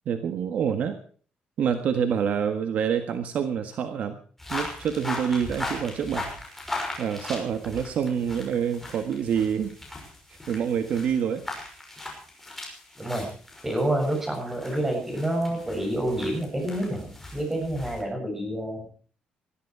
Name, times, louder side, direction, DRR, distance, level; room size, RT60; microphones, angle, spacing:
voice 1, 0.1-1.0 1.6-4.2 4.5-6.2 7.0-9.7 10.5-11.4, right 7 dB, 55° right, 7 dB, 1.6 m, -27 dB
sound 1, 4.4-18.0, left 2 dB, 5° left, 5.9 m, -38 dB
voice 2, 13.0-13.3 13.6-18.9, right 1 dB, 10° right, 2 dB, 7.2 m, -28 dB
20.5 x 14.0 x 4.8 m, 0.42 s
cardioid pair, 180°, 3 cm